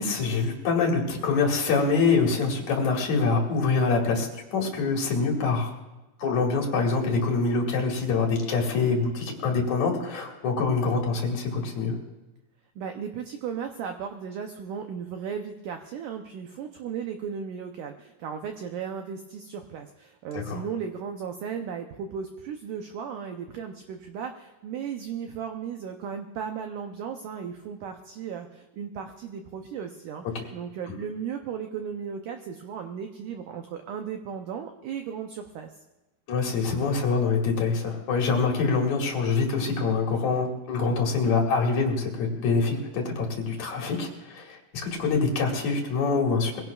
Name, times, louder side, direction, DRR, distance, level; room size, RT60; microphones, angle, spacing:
voice 1, 0.0-5.7 6.2-12.0 20.3-20.6 30.3-30.4 30.9-31.0 36.3-46.6, left 4 dB, 55° left, 0 dB, 2.9 m, -25 dB
voice 2, 12.8-30.2 30.5-35.7, right 7 dB, 90° right, 5 dB, 1.8 m, -36 dB
23.0 x 17.0 x 2.4 m, 1.1 s
omnidirectional pair, 4.7 m